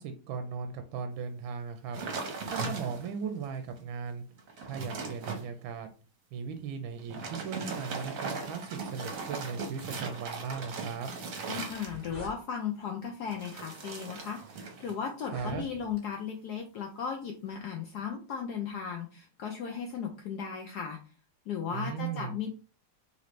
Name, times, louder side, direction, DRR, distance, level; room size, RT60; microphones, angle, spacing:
voice 1, 0.0-2.0 2.2-4.2 4.6-5.9 6.3-11.1 15.3-15.6 21.7-22.4, right 6 dB, 75° right, 6 dB, 1.3 m, -37 dB
sound 1, 1.9-3.2 3.8-3.9 4.3-5.4 7.0-12.3 13.3-15.0 15.3-15.7, right 4 dB, 55° right, 1.0 m, -38 dB
voice 2, 11.5-21.0 21.5-22.5, left 7 dB, 75° left, 2 dB, 0.9 m, -36 dB
sound 2, 11.7-12.4 13.2-13.5 14.2-14.3 15.1-16.0, equal, 20° left, 1.5 m, -45 dB
4.1 x 2.9 x 3.1 m, 0.36 s
omnidirectional pair, 2.3 m